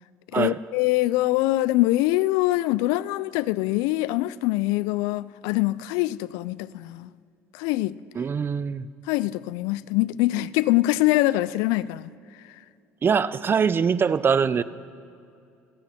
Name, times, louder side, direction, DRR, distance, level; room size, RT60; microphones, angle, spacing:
voice 1, 0.3-7.1 7.5-8.0 9.1-12.1, left 17 dB, 75° left, 0.3 m, -24 dB
voice 2, 8.2-8.9 13.0-14.6, right 6 dB, 35° right, 0.5 m, -23 dB
26.0 x 8.8 x 4.3 m
hypercardioid pair, 75°, 6 cm